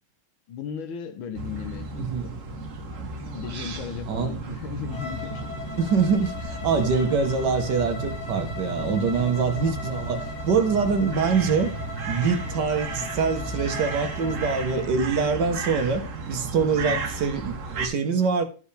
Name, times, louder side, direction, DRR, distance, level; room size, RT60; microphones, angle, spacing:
voice 1, 0.5-2.4 3.3-5.5 9.1-9.5 16.7-17.0, left 7 dB, 70° left, 1.6 m, -36 dB
sound 1, 1.3-17.9, right 3 dB, 45° right, 1.3 m, -34 dB
voice 2, 2.0-2.3 4.1-4.4 5.8-11.7 12.1-16.0 16.3-18.4, right 5 dB, 60° right, 1.5 m, -24 dB
Bowed string instrument, 4.8-14.9, left 5 dB, 35° left, 2.2 m, -39 dB
12.5 x 5.3 x 3.3 m
omnidirectional pair, 2.3 m